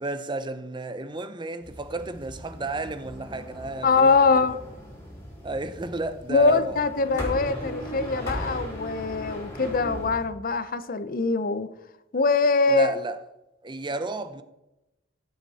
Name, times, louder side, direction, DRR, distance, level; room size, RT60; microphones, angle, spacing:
voice 1, 0.0-4.5 5.4-6.8 12.7-13.2 13.6-14.4, right 2 dB, 25° right, 0.6 m, -32 dB
sound 1, 1.6-10.2, equal, 15° left, 3.7 m, -38 dB
voice 2, 3.8-4.6 6.3-11.7 12.1-12.9, left 4 dB, 50° left, 0.7 m, -22 dB
14.5 x 7.6 x 4.2 m
head